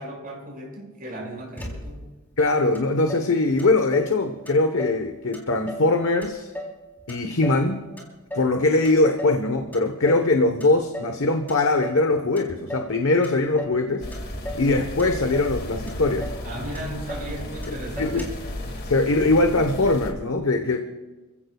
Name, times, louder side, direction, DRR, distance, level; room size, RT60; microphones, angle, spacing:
voice 1, 0.0-2.0 16.4-18.3, right 1 dB, 40° right, -2 dB, 6.1 m, -36 dB
Motor vehicle (road), 1.6-2.2 2.7-2.8 3.1-4.2 4.5-5.1 5.3-5.9 6.2-7.7 8.0-8.6 8.8-9.4 9.7-10.3 10.6-11.2 11.5-12.1 12.4-12.9 13.2-13.8 14.1-14.7 15.0-15.6 15.9-16.0 16.2-16.5 16.7-17.3 17.6-17.7 18.0-18.5, equal, 10° left, 3.7 m, -36 dB
voice 2, 2.4-6.5 7.1-7.8 8.3-14.1 14.5-16.3 17.7-18.2 18.8-20.8, left 2 dB, 65° left, 5 dB, 1.1 m, -21 dB
sound 1, 14.0-20.1, left 1 dB, 45° left, 2.2 m, -34 dB
28.5 x 16.0 x 2.4 m, 1.2 s
head